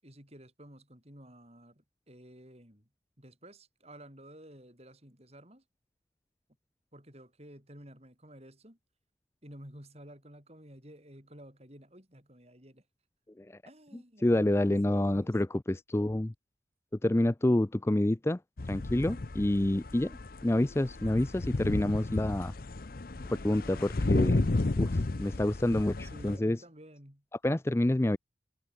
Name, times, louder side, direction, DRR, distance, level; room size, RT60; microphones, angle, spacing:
voice 1, 0.0-2.9 3.2-5.6 6.9-8.8 9.4-12.8 13.6-15.3 26.0-27.6, right 1 dB, 35° right, 6.8 m, -52 dB
voice 2, 13.9-16.3 17.0-18.4 18.7-22.5 23.4-24.4 24.8-26.6 27.4-28.2, left 1 dB, 15° left, 0.4 m, -28 dB
sound 1, 18.6-26.4, left 2 dB, 50° left, 0.7 m, -32 dB
head